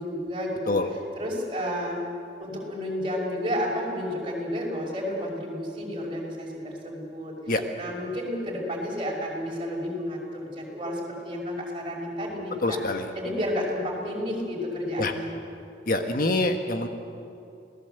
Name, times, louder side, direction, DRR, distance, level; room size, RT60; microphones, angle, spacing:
voice 1, 0.0-2.0 2.4-15.4, equal, 30° right, -2 dB, 5.6 m, -31 dB
voice 2, 12.6-13.0 15.0-15.1 15.9-16.9, left 2 dB, 50° left, 6 dB, 1.4 m, -25 dB
27.5 x 18.5 x 8.1 m, 2.7 s
head